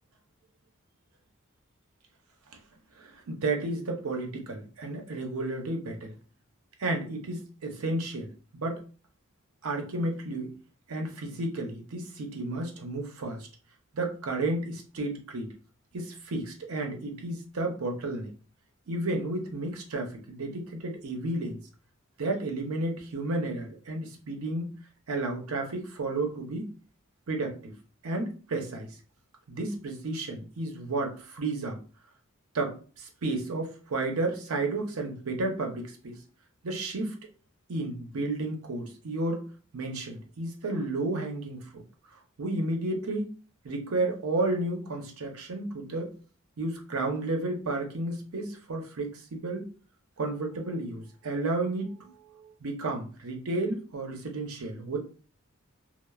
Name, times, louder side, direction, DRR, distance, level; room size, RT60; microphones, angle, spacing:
voice 1, 3.0-6.1 6.8-8.8 9.6-10.5 10.9-13.5 13.9-15.5 15.9-18.3 18.9-21.6 22.2-24.7 25.1-26.7 27.3-27.7 28.0-28.9 29.5-31.8 32.5-36.2 36.6-37.1 37.7-39.5 39.7-41.6 42.4-43.3 43.6-46.1 46.6-49.7 50.2-52.0 52.3-55.0, right 2 dB, 80° right, 2 dB, 0.6 m, -32 dB
3.0 x 2.0 x 2.2 m, 0.38 s
head